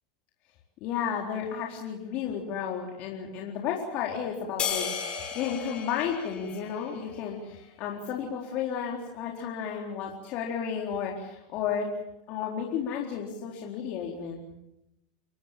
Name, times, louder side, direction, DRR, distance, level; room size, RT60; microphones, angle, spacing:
voice 1, 0.8-11.9 12.3-14.4, left 7 dB, 50° left, -1 dB, 4.1 m, -33 dB
sound 1, 4.6-7.2, left 7 dB, 30° left, 6.2 m, -34 dB
29.5 x 17.5 x 7.5 m, 0.88 s
hypercardioid pair, 110°, 3 cm